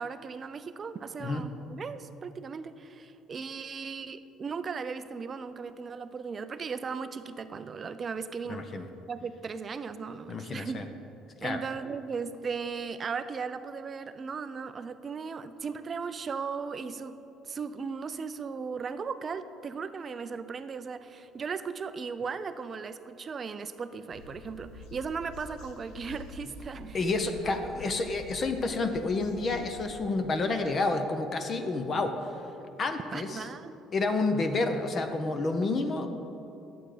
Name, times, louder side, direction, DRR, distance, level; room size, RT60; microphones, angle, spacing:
voice 1, 0.0-8.7 9.1-10.8 11.4-17.2 17.4-27.0 27.6-27.9 33.1-33.7, right 5 dB, 25° right, 12 dB, 0.4 m, -37 dB
voice 2, 8.5-8.9 10.3-10.8 11.4-11.6 26.9-32.1 32.8-33.5 33.9-36.1, left 3 dB, 30° left, 7 dB, 0.6 m, -29 dB
sound 1, 24.1-29.9, left 3 dB, 70° left, 0.7 m, -47 dB
11.0 x 7.7 x 4.9 m, 2.9 s
cardioid pair, 165°, 0 cm